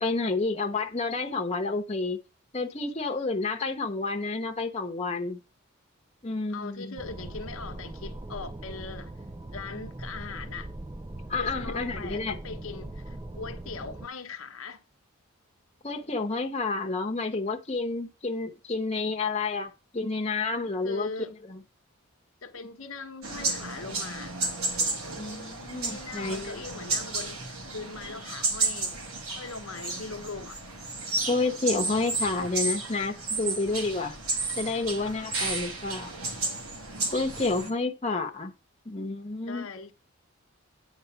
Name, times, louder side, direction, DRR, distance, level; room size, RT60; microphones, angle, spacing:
voice 1, 0.0-2.2 2.5-5.4 6.2-6.9 11.3-12.4 15.8-21.1 21.4-21.6 25.2-26.6 31.3-34.2 34.6-36.1 37.1-38.5 38.8-39.7, left 3 dB, 30° left, 1.0 m, -30 dB
voice 2, 6.5-9.1 9.5-10.7 11.4-14.8 20.8-21.3 22.4-24.3 25.8-29.0 29.3-30.6 39.5-39.9, left 4 dB, 75° left, 1.0 m, -40 dB
sound 1, 7.0-14.1, right 1 dB, 15° right, 0.4 m, -40 dB
sound 2, 23.2-37.7, right 3 dB, 85° right, 2.4 m, -32 dB
9.5 x 3.9 x 7.1 m
head